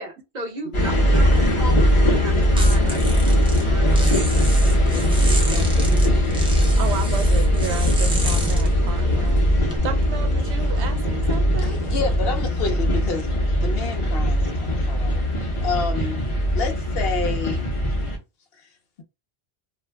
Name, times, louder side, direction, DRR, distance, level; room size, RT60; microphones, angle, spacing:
voice 1, 0.0-6.7, right 1 dB, 45° right, 1.0 m, -36 dB
sound 1, 0.7-18.2, equal, 30° left, 0.7 m, -20 dB
sound 2, 1.2-9.8, left 1 dB, 5° right, 0.4 m, -27 dB
voice 2, 6.8-9.4 9.8-11.8, right 7 dB, 85° right, 0.9 m, -32 dB
voice 3, 11.6-13.3 13.6-15.3 15.6-16.2 16.5-17.7, left 4 dB, 65° left, 0.9 m, -29 dB
2.5 x 2.1 x 3.2 m
omnidirectional pair, 1.1 m